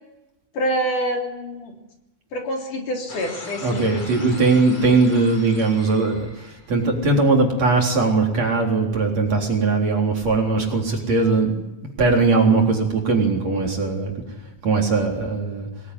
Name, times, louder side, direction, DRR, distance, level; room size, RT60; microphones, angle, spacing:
voice 1, 0.5-1.7 2.3-3.9, equal, 55° left, 2 dB, 4.6 m, -26 dB
sound 1, 3.1-7.2, left 2 dB, 40° left, 4.9 m, -40 dB
voice 2, 3.6-11.6 12.0-14.1 14.6-15.7, right 3 dB, 45° right, 1 dB, 4.8 m, -20 dB
25.5 x 20.0 x 9.9 m, 1.0 s
omnidirectional pair, 4.4 m